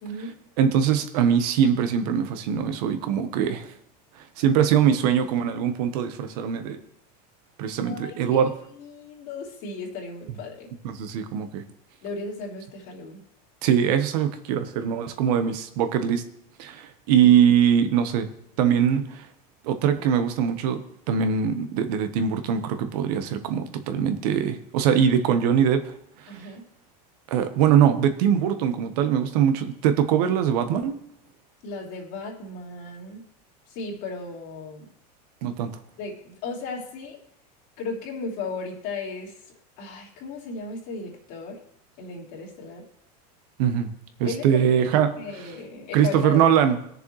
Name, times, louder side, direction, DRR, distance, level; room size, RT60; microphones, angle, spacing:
voice 1, 0.0-0.3 7.8-10.7 12.0-13.2 17.2-17.3 26.3-26.6 31.6-33.2 33.7-34.9 36.0-37.2 37.8-41.6 42.0-42.8 44.2-44.6 45.2-46.5, left 3 dB, 60° left, -2 dB, 3.2 m, -36 dB
voice 2, 0.6-3.7 4.4-6.8 7.6-8.5 10.8-11.6 13.6-16.2 16.6-18.3 18.6-19.3 19.6-20.8 21.1-25.9 26.2-26.5 27.3-31.0 35.4-35.7 43.6-43.9 44.2-45.2 45.9-46.8, right 8 dB, 75° right, 8 dB, 1.2 m, -22 dB
19.5 x 6.9 x 3.2 m, 0.71 s
supercardioid pair, 135°, 20 cm